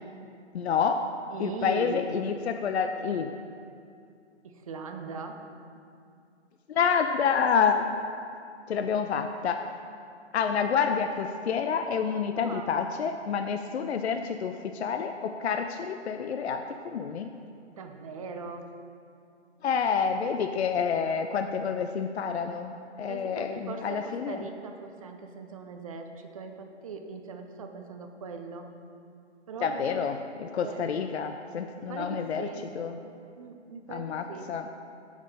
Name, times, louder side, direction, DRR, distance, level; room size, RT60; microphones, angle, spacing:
voice 1, 0.5-1.1 1.4-3.3 6.7-7.9 8.7-9.7 10.3-17.3 19.6-24.5 29.6-32.5 32.7-33.1 33.9-34.7, left 6 dB, 70° left, 6 dB, 0.5 m, -28 dB
voice 2, 1.3-2.0 4.4-5.5 12.3-12.9 17.8-18.7 23.1-28.7 29.5-30.1 30.6-30.8 31.9-32.7 33.4-34.5, right 4 dB, 30° right, 5 dB, 0.5 m, -40 dB
8.2 x 4.9 x 5.4 m, 2.4 s
hypercardioid pair, 145°, 35 cm